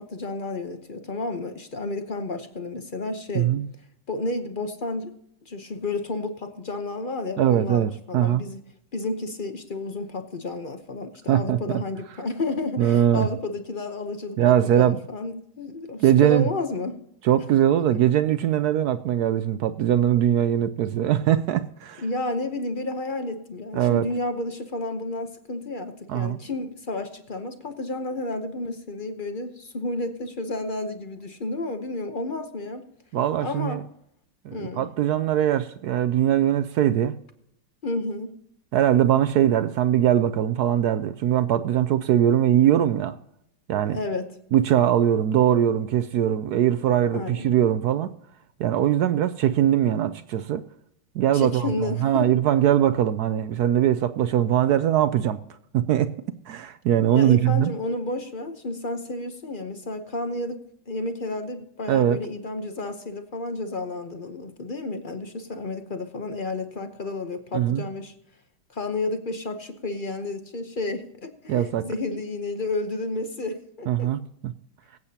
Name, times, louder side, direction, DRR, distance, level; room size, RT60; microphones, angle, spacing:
voice 1, 0.0-3.5 4.1-5.1 5.5-8.6 8.9-17.0 22.0-32.8 33.4-33.8 34.5-34.8 37.8-38.4 43.8-44.4 47.1-47.5 51.3-52.3 57.1-68.1 68.7-74.1, left 2 dB, 50° left, 0.6 m, -31 dB
voice 2, 3.3-3.7 7.4-8.4 11.3-11.6 12.8-13.3 14.4-15.0 16.0-16.5 17.2-22.0 23.7-24.1 26.1-26.4 33.1-33.8 34.4-37.1 38.7-43.2 43.7-44.0 44.5-48.1 48.6-50.6 51.1-55.4 55.7-56.1 56.5-57.7 61.9-62.2 67.5-67.8 71.5-71.9 73.9-74.5, right 11 dB, 75° right, 0.9 m, -21 dB
23.5 x 8.5 x 2.8 m
omnidirectional pair, 2.2 m